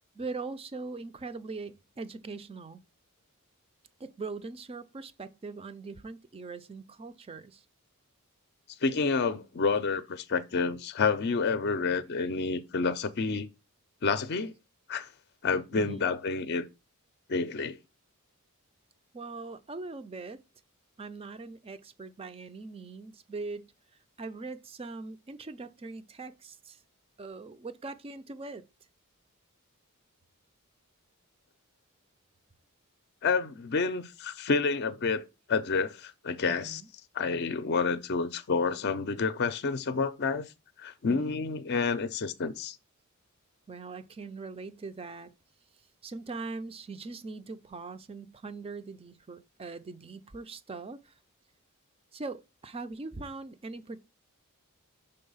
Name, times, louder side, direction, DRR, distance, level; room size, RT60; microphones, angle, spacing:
voice 1, 0.1-2.8 4.0-7.6 15.7-16.1 19.1-20.4 21.0-23.7 24.2-26.8 27.2-28.6 36.5-36.9 41.0-41.4 43.7-45.3 46.0-51.1 52.1-54.0, right 3 dB, 25° right, 0.4 m, -41 dB
voice 2, 8.8-13.5 14.0-14.5 14.9-15.1 15.4-16.7 17.3-17.8 33.2-35.2 35.5-36.8 37.1-40.4 40.8-42.8, left 4 dB, 50° left, 0.5 m, -29 dB
5.5 x 3.9 x 5.4 m
head